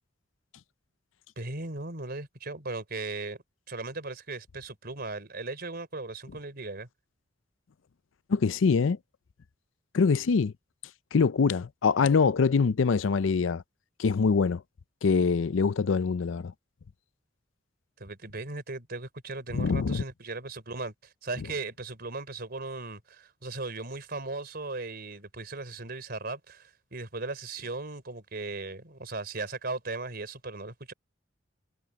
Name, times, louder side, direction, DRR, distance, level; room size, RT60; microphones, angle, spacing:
voice 1, 1.4-3.4 3.7-6.9 18.0-30.9, right 3 dB, 55° right, 4.1 m, -37 dB
voice 2, 8.3-9.0 9.9-10.5 11.1-13.6 14.0-14.6 15.0-16.5 19.5-20.0, left 5 dB, 85° left, 0.5 m, -24 dB
head